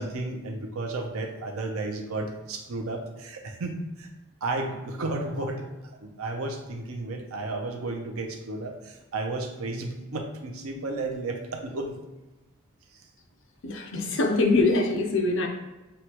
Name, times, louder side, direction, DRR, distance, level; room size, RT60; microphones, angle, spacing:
voice 1, 0.0-4.1 4.4-12.0 12.9-13.1, right 2 dB, 85° right, 4 dB, 0.6 m, -33 dB
voice 2, 13.6-15.5, left 3 dB, 60° left, 3 dB, 0.6 m, -23 dB
6.3 x 2.3 x 2.9 m, 1.1 s
head